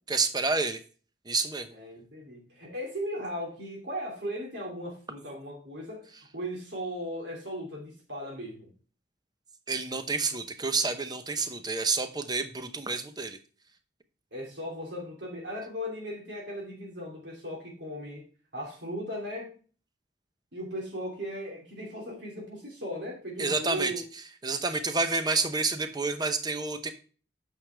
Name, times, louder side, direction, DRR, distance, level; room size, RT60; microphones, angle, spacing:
voice 1, 0.1-0.8 1.3-1.7 9.7-13.4 23.4-23.9 24.4-26.9, right 3 dB, 20° right, 9 dB, 0.8 m, -29 dB
voice 2, 1.7-8.7 14.3-18.2 18.5-19.5 20.5-24.0, equal, 65° right, -2 dB, 2.9 m, -37 dB
9.4 x 6.5 x 3.4 m, 0.39 s
head